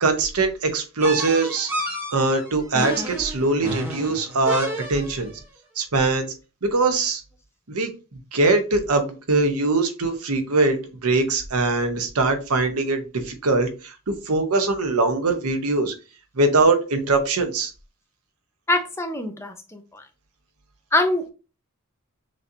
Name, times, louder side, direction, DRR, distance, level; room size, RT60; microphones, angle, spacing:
voice 1, 0.0-1.7 2.1-5.3 5.8-6.3 6.6-7.2 7.7-7.9 8.3-15.9 16.4-17.7, right 3 dB, 90° right, 7 dB, 0.9 m, -22 dB
sound 1, 1.0-5.3, right 1 dB, 10° right, 1.0 m, -31 dB
voice 2, 18.7-20.0 20.9-21.2, left 2 dB, 10° left, 6 dB, 0.6 m, -24 dB
6.2 x 2.8 x 2.7 m, 0.32 s
head